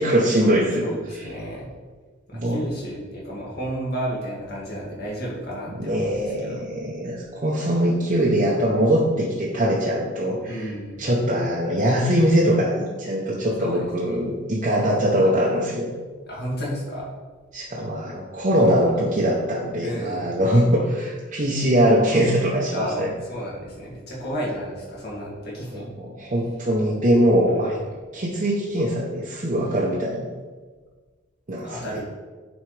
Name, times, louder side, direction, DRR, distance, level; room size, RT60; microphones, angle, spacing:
voice 1, 0.0-0.8 1.1-1.3 2.3-2.6 5.7-10.7 11.0-15.9 17.5-23.1 25.7-27.8 28.1-30.3 31.5-32.0, equal, 40° right, -4 dB, 0.7 m, -22 dB
voice 2, 0.8-1.7 2.3-6.6 10.5-11.1 13.6-14.3 16.3-17.0 18.6-19.0 19.8-20.4 22.7-25.9 27.5-27.8 31.6-32.0, equal, 55° left, -5 dB, 2.0 m, -32 dB
9.2 x 4.0 x 3.3 m, 1.4 s
head